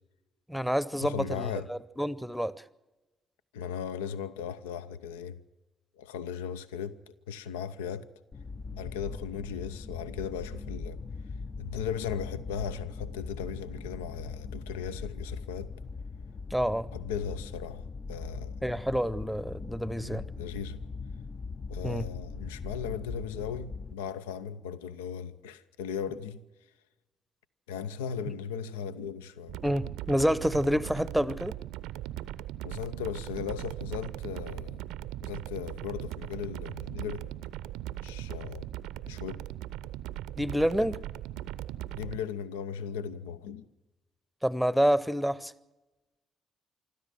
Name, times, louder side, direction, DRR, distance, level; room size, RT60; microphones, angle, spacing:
voice 1, 0.5-2.5 16.5-16.9 18.6-20.2 21.8-22.1 29.6-31.6 40.4-41.0 44.4-45.5, equal, ahead, 0.8 m, -28 dB
voice 2, 1.0-1.7 3.5-5.4 6.0-8.1 8.7-11.0 11.6-15.7 16.9-18.6 20.0-20.8 21.7-26.4 27.7-29.6 32.6-34.8 35.2-37.3 38.0-38.7 39.0-39.4 41.9-43.6, left 7 dB, 75° left, 0.6 m, -37 dB
sound 1, 8.3-23.9, left 4 dB, 40° left, 0.7 m, -40 dB
sound 2, 29.5-42.2, right 13 dB, 65° right, 0.6 m, -39 dB
25.0 x 13.5 x 7.8 m
figure-of-eight pair, 40°, 0 cm